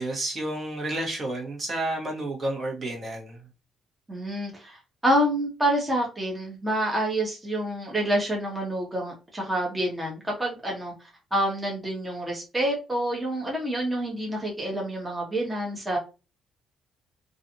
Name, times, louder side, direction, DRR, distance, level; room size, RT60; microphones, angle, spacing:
voice 1, 0.0-3.5, right 1 dB, 40° right, 0 dB, 1.1 m, -31 dB
voice 2, 4.1-4.8 5.0-10.9 11.3-16.0, right 1 dB, 15° right, -2 dB, 0.9 m, -27 dB
2.5 x 2.4 x 2.7 m, 0.30 s
cardioid pair, 90°, 0 cm